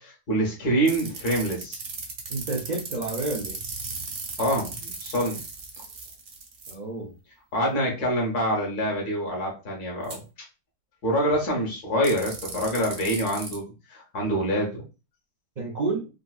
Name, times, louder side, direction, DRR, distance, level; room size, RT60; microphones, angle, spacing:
voice 1, 0.0-1.8 4.4-5.4 7.5-10.2 11.0-13.6 13.9-14.8, equal, 65° left, 0 dB, 1.7 m, -26 dB
sound 1, 0.9-6.7 10.0-10.2 12.0-13.6, right 4 dB, 55° right, 1.1 m, -36 dB
voice 2, 2.3-3.6 6.7-7.1 15.6-16.1, right 3 dB, 70° right, -1 dB, 0.4 m, -30 dB
3.9 x 2.6 x 2.3 m, 0.30 s
omnidirectional pair, 1.8 m